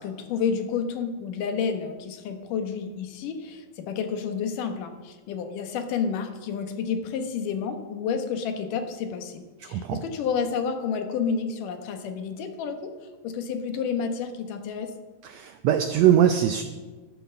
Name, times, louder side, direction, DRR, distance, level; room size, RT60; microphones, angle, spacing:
voice 1, 0.0-12.8 13.2-14.9, left 6 dB, 80° left, 6 dB, 2.7 m, -30 dB
voice 2, 9.7-10.0 15.2-16.6, right 10 dB, 80° right, 8 dB, 1.5 m, -21 dB
11.5 x 10.5 x 6.8 m, 1.3 s
omnidirectional pair, 3.8 m